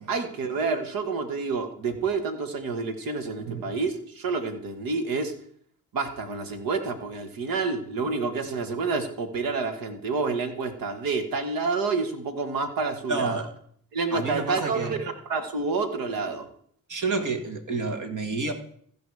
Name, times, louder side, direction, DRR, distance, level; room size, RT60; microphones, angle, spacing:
voice 1, 0.1-5.3 5.9-13.5 13.9-16.5, right 4 dB, 75° right, 8 dB, 1.7 m, -29 dB
voice 2, 13.1-13.5 14.1-15.0 16.9-18.5, right 3 dB, 55° right, 6 dB, 1.8 m, -29 dB
15.0 x 5.1 x 4.8 m, 0.62 s
supercardioid pair, 65°, 35 cm